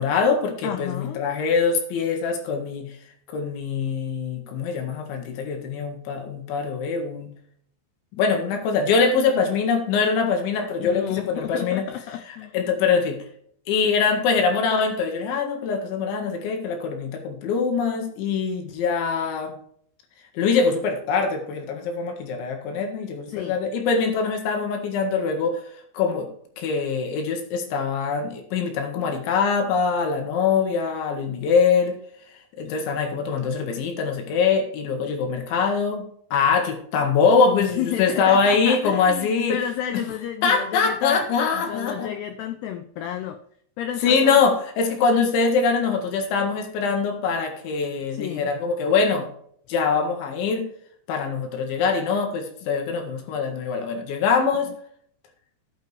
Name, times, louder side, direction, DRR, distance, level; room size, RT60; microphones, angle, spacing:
voice 1, 0.0-2.9 3.3-7.3 8.1-11.8 12.3-13.2 13.7-19.5 20.4-25.6 25.9-26.3 26.6-32.0 32.6-36.1 36.3-39.6 39.9-40.0 40.4-42.1 44.0-49.3 49.7-50.7 51.1-54.7, left 5 dB, 70° left, 4 dB, 4.0 m, -23 dB
voice 2, 0.6-1.3 10.8-12.6 23.3-23.6 37.5-41.2 41.5-43.4 43.8-44.4 48.1-48.5, left 10 dB, 90° left, 8 dB, 2.3 m, -31 dB
13.0 x 9.0 x 3.4 m, 0.63 s
omnidirectional pair, 5.8 m